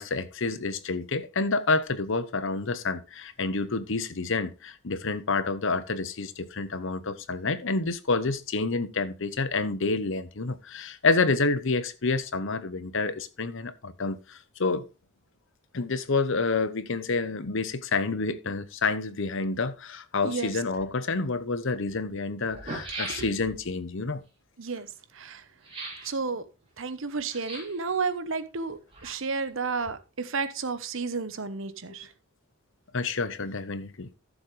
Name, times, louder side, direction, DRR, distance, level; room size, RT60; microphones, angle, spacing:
voice 1, 0.0-14.8 15.7-24.2 32.9-34.1, left 3 dB, 65° left, 0.9 m, -28 dB
voice 2, 20.2-20.6 22.7-22.8 24.6-24.9 25.1-25.4 26.0-26.5 26.8-32.1, right 4 dB, 65° right, 1.0 m, -32 dB
sound 1, 22.5-23.7 25.6-26.1 27.3-27.8 28.7-29.5 29.8-29.9, right 2 dB, 25° right, 3.8 m, -38 dB
14.0 x 7.2 x 3.3 m
head